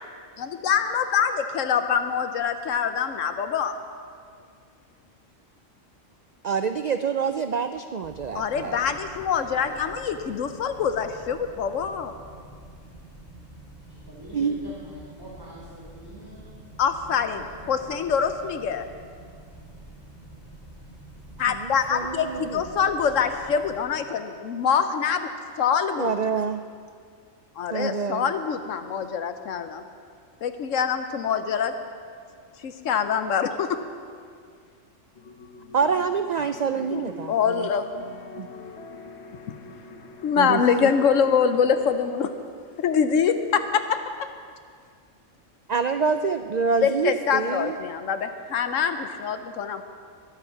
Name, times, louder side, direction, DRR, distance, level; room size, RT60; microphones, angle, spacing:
voice 1, 0.4-3.7 8.3-12.1 16.8-17.4 17.7-18.9 21.4-25.3 25.6-26.1 27.6-29.8 30.4-31.7 32.6-33.8 36.9-38.0 40.2-42.3 42.8-44.3 46.8-49.8, left 7 dB, 80° left, 9 dB, 1.1 m, -25 dB
voice 2, 6.4-8.8 14.3-14.6 21.5-22.6 26.0-26.6 27.7-28.3 35.7-37.7 38.4-38.5 40.4-40.9 45.7-47.7, right 5 dB, 75° right, 9 dB, 0.3 m, -26 dB
sound 1, 8.0-23.8, right 1 dB, 10° left, 2.9 m, -47 dB
voice 3, 9.4-10.0 13.9-16.7 17.0-18.7 22.1-23.3 35.6-36.0 36.7-37.6 39.5-40.3, equal, 15° right, -7 dB, 2.5 m, -46 dB
sound 2, 35.2-41.9, left 3 dB, 60° left, 1.1 m, -45 dB
23.0 x 8.2 x 5.8 m, 2.1 s
omnidirectional pair, 1.3 m